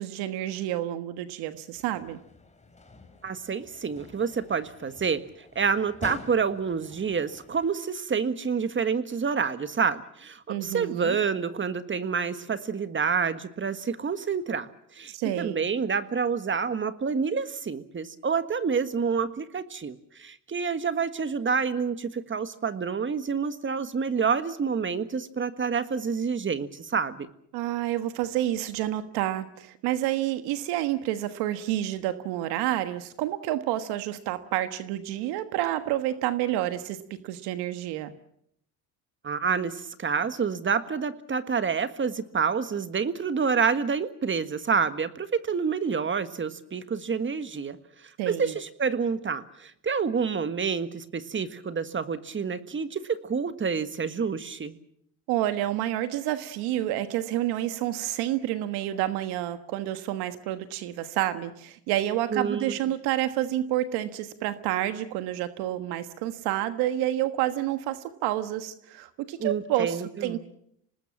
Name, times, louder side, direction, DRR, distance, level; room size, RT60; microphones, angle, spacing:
voice 1, 0.0-2.2 10.5-11.2 15.1-15.6 27.5-37.0 37.2-38.1 48.2-48.5 55.3-70.5, right 13 dB, 75° right, 10 dB, 1.5 m, -29 dB
sound 1, 1.8-7.7, left 3 dB, 20° left, 3.3 m, -47 dB
voice 2, 3.2-5.2 5.5-27.3 39.2-47.8 48.2-54.8 62.3-62.6 69.4-70.4, right 6 dB, 30° right, 11 dB, 1.6 m, -28 dB
26.0 x 19.5 x 7.5 m, 0.73 s
supercardioid pair, 85°, 39 cm